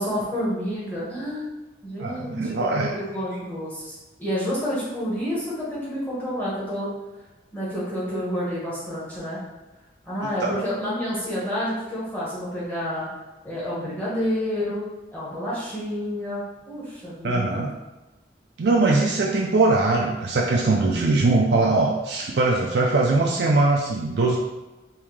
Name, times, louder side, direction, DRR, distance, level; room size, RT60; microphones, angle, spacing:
voice 1, 0.0-1.4 1.8-6.9 7.5-9.4 10.0-13.1 13.4-14.8 15.1-17.6, equal, 10° left, -9 dB, 1.2 m, -29 dB
voice 2, 2.0-2.9 10.4-10.6 17.2-17.7 18.6-24.4, right 3 dB, 65° right, -2 dB, 0.4 m, -21 dB
3.5 x 2.7 x 3.1 m, 1.1 s
head